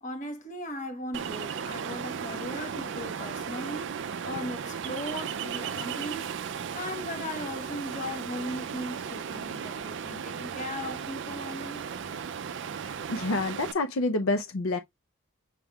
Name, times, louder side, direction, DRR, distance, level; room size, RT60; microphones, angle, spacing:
voice 1, 0.0-6.4 6.7-11.9, left 1 dB, 35° left, 1.3 m, -38 dB
Ocean, 1.1-13.7, right 7 dB, 55° right, 0.4 m, -36 dB
voice 2, 12.8-14.8, left 2 dB, 75° left, 0.6 m, -28 dB
6.6 x 3.5 x 2.3 m
head